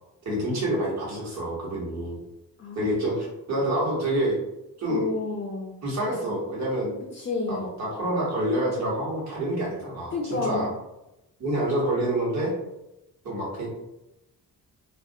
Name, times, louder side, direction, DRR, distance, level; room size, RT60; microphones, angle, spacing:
voice 1, 0.2-2.2 2.7-4.4 4.8-5.1 5.8-6.9 7.5-10.7 11.4-12.5 13.2-13.7, right 1 dB, 45° right, -4 dB, 1.1 m, -27 dB
voice 2, 2.6-3.1 4.9-5.7 7.1-7.8 10.1-10.7, left 3 dB, 30° left, -2 dB, 0.5 m, -30 dB
2.4 x 2.1 x 2.7 m, 0.91 s
cardioid pair, 100°, 38 cm